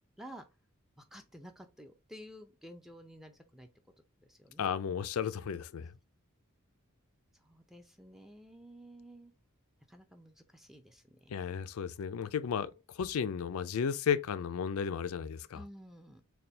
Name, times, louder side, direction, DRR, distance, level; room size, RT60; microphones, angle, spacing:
voice 1, 1.0-3.7 4.2-4.7 7.4-9.3 9.9-11.3 15.5-16.2, equal, ahead, 0.4 m, -52 dB
voice 2, 4.6-5.9 11.3-15.6, left 7 dB, 85° left, 0.4 m, -34 dB
4.2 x 2.2 x 3.2 m
head